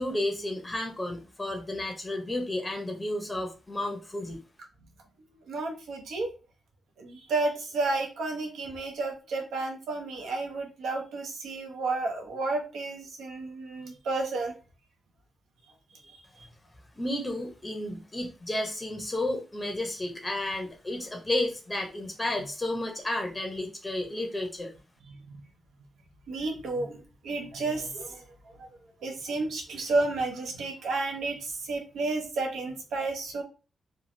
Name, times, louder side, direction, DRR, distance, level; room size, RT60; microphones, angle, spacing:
voice 1, 0.0-4.4 17.0-24.7, left 1 dB, 20° left, 3 dB, 0.6 m, -32 dB
voice 2, 5.5-6.3 7.0-14.5 16.1-16.5 25.1-25.4 26.3-28.2 28.6-28.7 29.0-33.4, right 3 dB, 90° right, 2 dB, 0.7 m, -32 dB
3.1 x 2.2 x 2.6 m, 0.33 s
cardioid pair, 95°, 0 cm